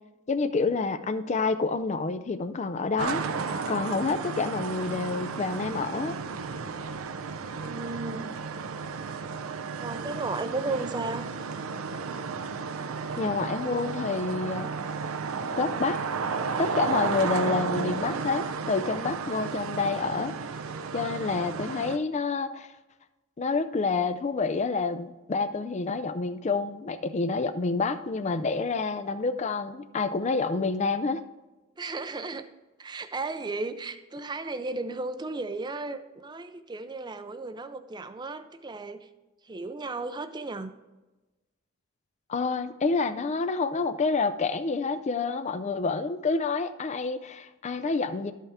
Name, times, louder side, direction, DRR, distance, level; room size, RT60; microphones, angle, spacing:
voice 1, 0.3-3.2 3.7-6.2 13.2-14.7 15.5-16.0 16.6-20.3 20.9-22.7 23.4-31.2 42.3-48.3, left 4 dB, 35° left, 11 dB, 0.4 m, -28 dB
sound 1, 3.0-22.0, right 5 dB, 80° right, 0.6 m, -33 dB
voice 2, 7.6-8.4 9.8-11.3 31.8-32.5 32.8-39.1 39.4-40.7, right 3 dB, 20° right, 10 dB, 0.5 m, -34 dB
12.5 x 5.6 x 3.5 m, 1.1 s
head